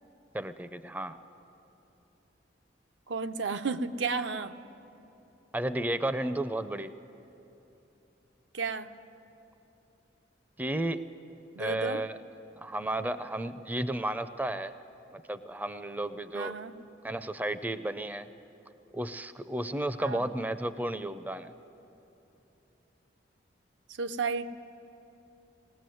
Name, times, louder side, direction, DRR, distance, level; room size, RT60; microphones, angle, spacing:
voice 1, 0.3-1.2 5.5-6.9 10.6-11.1 11.6-12.2 12.6-14.7 15.1-16.6 17.0-18.3 18.9-21.5, right 1 dB, 10° right, 11 dB, 0.4 m, -33 dB
voice 2, 3.1-4.6 8.5-8.9 11.5-12.0 16.3-16.7 20.0-20.3 23.9-24.5, right 4 dB, 80° right, 9 dB, 0.7 m, -32 dB
20.0 x 19.0 x 7.7 m, 2.9 s
head